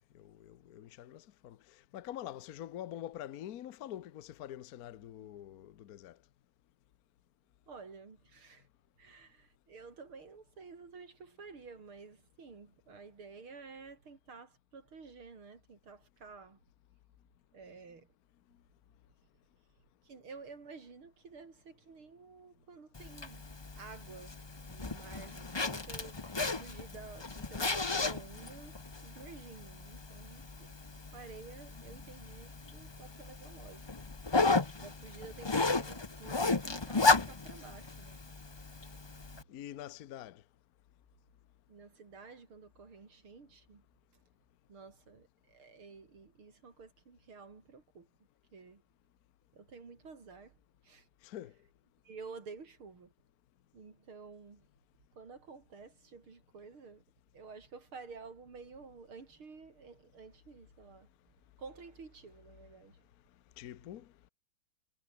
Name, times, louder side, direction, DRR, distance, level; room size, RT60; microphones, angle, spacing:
voice 1, 0.1-1.6 1.9-6.2 39.5-40.4 51.2-51.5 63.6-64.1, left 12 dB, 60° left, 1.1 m, -45 dB
voice 2, 7.7-8.6 9.0-16.6 17.5-18.1 20.1-23.5 23.7-24.4 24.7-26.2 26.6-30.7 31.1-33.9 34.8-38.2 41.7-43.8 44.7-48.1 48.5-48.8 49.5-50.5 50.8-51.0 52.0-53.1 53.7-54.7 55.2-57.0 57.3-61.1 61.6-63.0, right 4 dB, 75° right, 4.5 m, -51 dB
Zipper (clothing), 22.9-39.4, left 3 dB, 35° left, 0.4 m, -34 dB
omnidirectional pair, 2.3 m